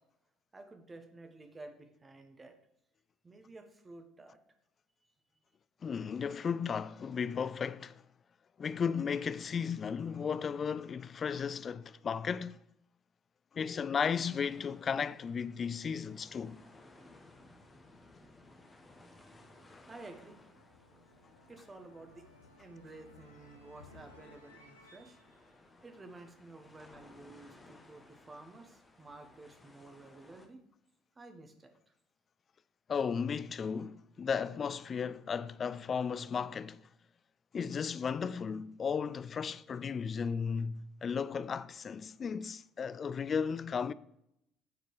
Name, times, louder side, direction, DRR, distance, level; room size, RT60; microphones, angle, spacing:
voice 1, 0.5-2.6 3.2-4.4 19.1-25.2 25.8-30.6 31.1-31.7, right 2 dB, 25° right, 1.2 m, -53 dB
voice 2, 5.8-8.0 8.6-12.6 13.5-16.6 32.9-36.8 37.5-43.9, left 6 dB, 35° left, 0.3 m, -35 dB
sound 1, 14.1-30.5, left 2 dB, 20° left, 1.2 m, -60 dB
sound 2, 17.6-26.7, left 2 dB, 85° left, 0.8 m, -61 dB
8.5 x 4.4 x 4.8 m
figure-of-eight pair, 55°, 0 cm